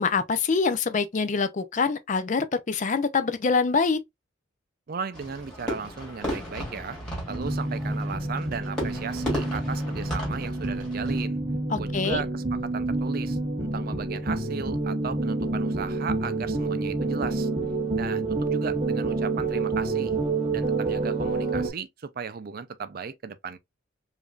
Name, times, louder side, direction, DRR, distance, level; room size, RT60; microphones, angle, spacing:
voice 1, 0.0-4.0 11.7-12.2, left 4 dB, 40° left, 0.4 m, -25 dB
voice 2, 4.9-7.0 7.3-11.4 11.8-17.5 17.9-20.1 20.5-23.6, right 5 dB, 50° right, 0.4 m, -36 dB
Fireworks, 5.1-11.2, equal, 5° left, 2.4 m, -35 dB
sound 1, 7.3-21.7, right 3 dB, 30° right, 0.9 m, -28 dB
5.0 x 2.6 x 2.3 m
head